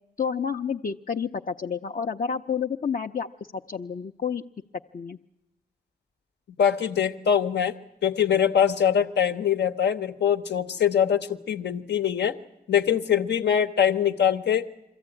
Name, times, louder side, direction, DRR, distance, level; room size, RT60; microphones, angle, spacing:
voice 1, 0.2-3.3 3.5-4.4 4.9-5.2, left 6 dB, 50° left, 3 dB, 0.7 m, -29 dB
voice 2, 6.6-7.7 8.0-12.3 12.7-14.7, left 8 dB, 80° left, 8 dB, 1.1 m, -23 dB
22.5 x 14.5 x 9.8 m, 0.93 s
cardioid pair, 45°, 18 cm